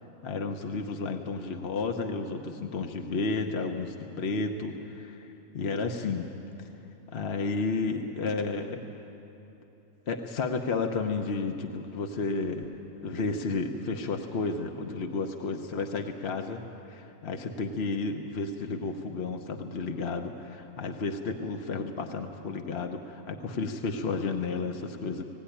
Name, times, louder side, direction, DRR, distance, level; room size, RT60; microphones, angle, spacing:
voice 1, 0.2-5.3 5.5-6.3 6.6-6.7 7.1-8.8 10.1-12.7 13.0-25.2, left 4 dB, 50° left, 4 dB, 1.1 m, -32 dB
18.5 x 16.5 x 10.0 m, 3.0 s
omnidirectional pair, 1.5 m